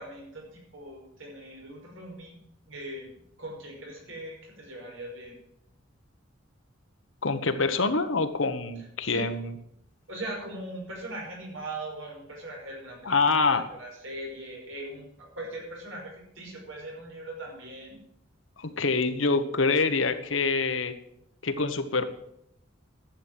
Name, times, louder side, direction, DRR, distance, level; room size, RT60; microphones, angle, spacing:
voice 1, 0.0-2.4 2.7-3.1 3.4-5.4 9.0-9.3 10.1-18.0, right 1 dB, 75° right, -1 dB, 5.5 m, -40 dB
voice 2, 7.2-9.5 13.0-13.7 18.6-20.9 21.4-22.0, left 4 dB, 70° left, 9 dB, 1.2 m, -25 dB
11.5 x 8.3 x 7.5 m, 0.76 s
head